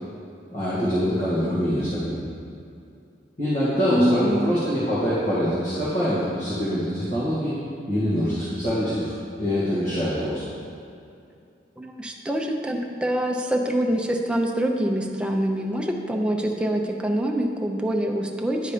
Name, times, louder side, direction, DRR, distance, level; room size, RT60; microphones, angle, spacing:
voice 1, 0.5-2.3 3.4-7.6 7.9-10.4, equal, 45° left, -10 dB, 1.8 m, -24 dB
voice 2, 3.9-4.5 11.8-18.7, right 1 dB, 5° right, 1 dB, 0.6 m, -25 dB
10.5 x 4.1 x 5.0 m, 2.6 s
head